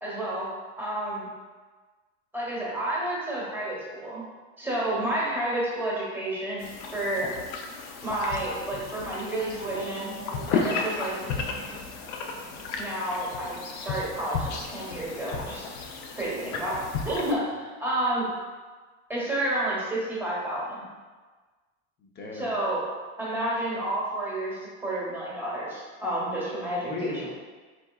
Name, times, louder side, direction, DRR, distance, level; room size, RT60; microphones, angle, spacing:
voice 1, 0.0-1.3 2.3-4.2 4.6-7.3 8.0-10.2 10.5-11.1 12.8-15.7 16.1-18.3 19.1-20.9 22.4-22.8 23.2-27.3, right 1 dB, 5° right, -7 dB, 1.1 m, -30 dB
sound 1, 6.6-17.3, left 5 dB, 60° left, 0.6 m, -34 dB
sound 2, 9.5-14.5, right 4 dB, 25° right, 0.4 m, -45 dB
voice 2, 16.2-16.6 17.4-17.5 22.0-22.5 26.8-27.3, left 3 dB, 25° left, -2 dB, 0.7 m, -37 dB
4.8 x 4.3 x 2.3 m, 1.4 s
cardioid pair, 155°, 41 cm